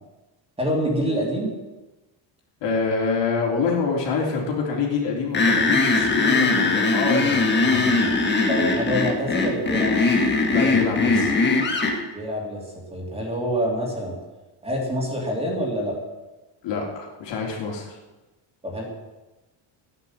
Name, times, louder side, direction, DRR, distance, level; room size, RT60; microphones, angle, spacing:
voice 1, 0.6-1.5 8.5-10.0 12.1-12.6 12.9-14.1 14.6-15.9 18.6-18.8, equal, 15° right, -2 dB, 3.0 m, -26 dB
voice 2, 2.6-8.2 10.5-11.4 16.6-18.0, left 4 dB, 65° left, -1 dB, 3.5 m, -26 dB
sound 1, 5.3-12.0, left 3 dB, 25° left, 1.7 m, -20 dB
13.5 x 9.8 x 7.4 m, 1.1 s
cardioid pair, 170°, 46 cm